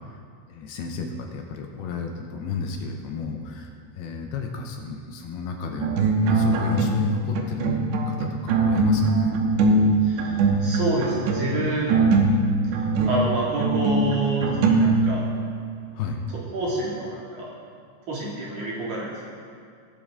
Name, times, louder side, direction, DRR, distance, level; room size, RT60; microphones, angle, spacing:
voice 1, 0.5-5.9 6.2-9.4 15.9-16.3, left 5 dB, 80° left, 2 dB, 2.4 m, -31 dB
sound 1, 5.8-7.1 7.4-15.5, right 3 dB, 80° right, 2.9 m, -21 dB
voice 2, 10.0-12.0 13.1-15.2 16.3-17.5 18.1-19.1, right 2 dB, 50° right, -6 dB, 3.2 m, -28 dB
19.0 x 7.0 x 3.7 m, 2.2 s
omnidirectional pair, 5.2 m